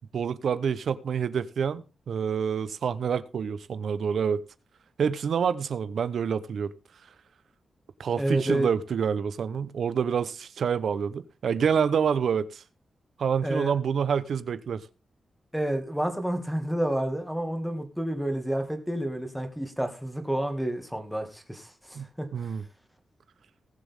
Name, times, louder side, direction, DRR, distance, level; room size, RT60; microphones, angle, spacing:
voice 1, 0.1-4.4 5.0-6.7 8.0-12.6 13.2-14.8 21.9-22.6, right 7 dB, 70° right, 0.9 m, -27 dB
voice 2, 8.2-8.7 13.4-13.7 15.5-22.5, right 1 dB, ahead, 2.2 m, -29 dB
19.5 x 7.3 x 3.6 m
wide cardioid pair, 140°, 0 cm